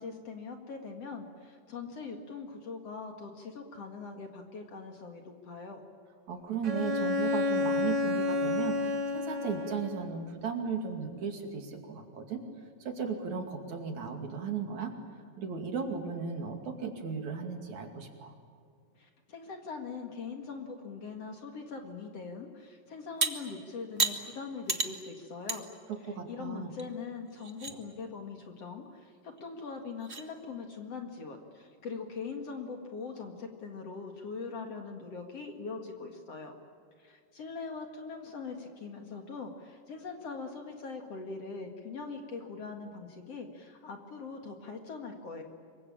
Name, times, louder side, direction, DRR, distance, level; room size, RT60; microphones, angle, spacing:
voice 1, 0.0-5.8 18.9-25.7 26.3-36.5 37.0-45.4, left 4 dB, 50° left, 4 dB, 2.7 m, -42 dB
voice 2, 6.3-12.4 12.8-14.9 15.4-18.3 25.9-26.7, right 5 dB, 55° right, 4 dB, 3.7 m, -36 dB
Bowed string instrument, 6.6-10.1, left 2 dB, 35° right, 2.1 m, -30 dB
sound 1, 23.2-23.3 24.0-24.2 24.7-24.9 25.5-25.6 26.0-26.1 26.8-26.9 27.3-27.7 29.4-29.5 30.0-30.2, right 4 dB, 80° right, 0.5 m, -30 dB
26.0 x 23.5 x 8.8 m, 2.2 s
omnidirectional pair, 4.1 m